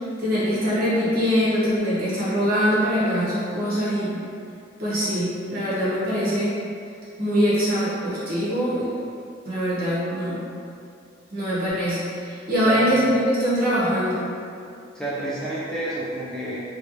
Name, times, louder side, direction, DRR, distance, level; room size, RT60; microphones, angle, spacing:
voice 1, 0.2-4.2 4.8-6.5 7.2-8.9 9.4-10.4 11.3-14.2, equal, 50° right, -10 dB, 1.1 m, -23 dB
voice 2, 12.6-13.0 14.9-16.6, right 1 dB, 5° left, -8 dB, 0.4 m, -29 dB
3.2 x 2.7 x 3.0 m, 2.5 s
head